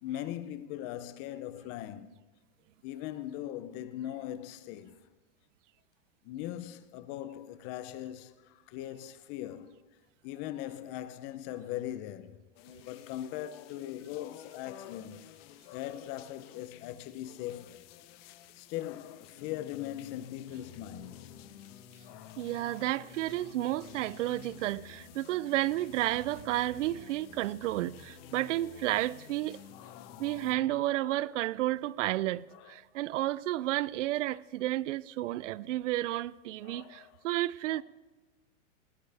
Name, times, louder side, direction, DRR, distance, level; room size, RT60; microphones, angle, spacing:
voice 1, 0.0-2.1 2.8-5.0 6.2-9.8 10.2-12.4 12.8-15.3 15.7-17.8 18.6-21.5 22.0-23.2 29.7-31.4 32.5-32.8 36.6-37.2 37.7-37.8, left 12 dB, 30° left, 0.6 m, -41 dB
sound 1, 12.6-30.5, left 13 dB, 50° left, 0.9 m, -55 dB
sound 2, 19.4-30.9, left 7 dB, 90° left, 1.8 m, -52 dB
voice 2, 22.4-29.6 30.2-37.8, right 15 dB, 75° right, 0.6 m, -32 dB
18.5 x 15.0 x 3.4 m
supercardioid pair, 150°, 38 cm